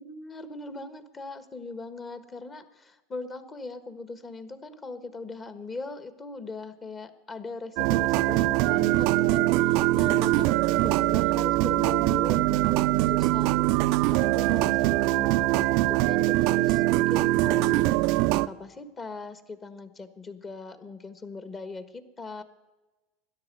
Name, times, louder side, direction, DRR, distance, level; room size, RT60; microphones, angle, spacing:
voice 1, 0.0-13.8 14.1-17.8 18.3-22.4, left 3 dB, 25° left, 12 dB, 1.4 m, -40 dB
sound 1, 7.8-18.5, right 18 dB, 60° right, 0.4 m, -23 dB
13.0 x 10.5 x 7.7 m, 1.1 s
hypercardioid pair, 90°, 0 cm